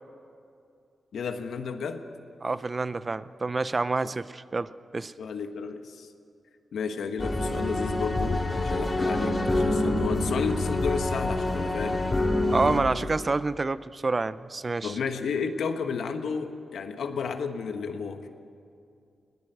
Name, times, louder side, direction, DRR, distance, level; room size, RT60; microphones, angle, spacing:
voice 1, 1.1-2.0 5.2-6.1 6.7-12.0 14.8-18.3, left 5 dB, 85° left, 7 dB, 1.3 m, -32 dB
voice 2, 2.4-5.1 12.5-14.9, right 3 dB, 40° right, 15 dB, 0.6 m, -28 dB
sound 1, 7.2-12.8, left 2 dB, 30° left, 3.1 m, -26 dB
21.0 x 19.0 x 8.0 m, 2.5 s
cardioid pair, 65°, 0 cm